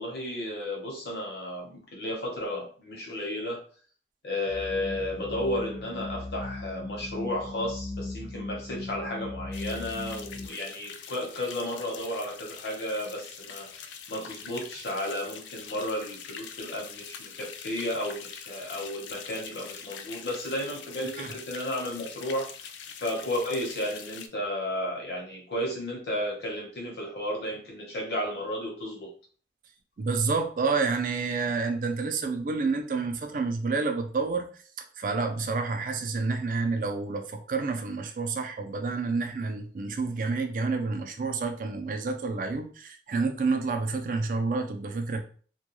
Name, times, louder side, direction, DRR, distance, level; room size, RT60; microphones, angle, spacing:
voice 1, 0.0-3.6 4.2-22.7 23.0-29.1, left 1 dB, 70° left, -1 dB, 0.8 m, -33 dB
sound 1, 4.5-10.5, left 2 dB, 25° left, 0.4 m, -38 dB
sound 2, 9.5-24.3, left 7 dB, 90° left, 0.3 m, -44 dB
voice 2, 30.0-34.5 34.8-45.2, right 4 dB, 50° right, 6 dB, 0.3 m, -29 dB
2.2 x 2.2 x 2.9 m, 0.43 s
head